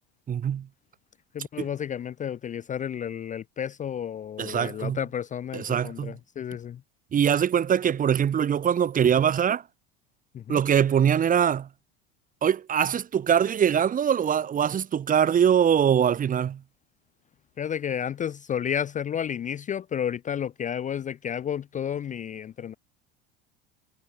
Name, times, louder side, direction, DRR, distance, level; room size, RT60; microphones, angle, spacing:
voice 1, 0.3-0.7 4.4-5.0 5.5-6.2 7.1-9.6 10.5-11.7 12.4-16.6, right 8 dB, 25° right, 0.9 m, -23 dB
voice 2, 1.3-6.8 10.3-10.6 17.6-22.7, left 9 dB, 25° left, 0.5 m, -31 dB
hypercardioid pair, 85°, 30 cm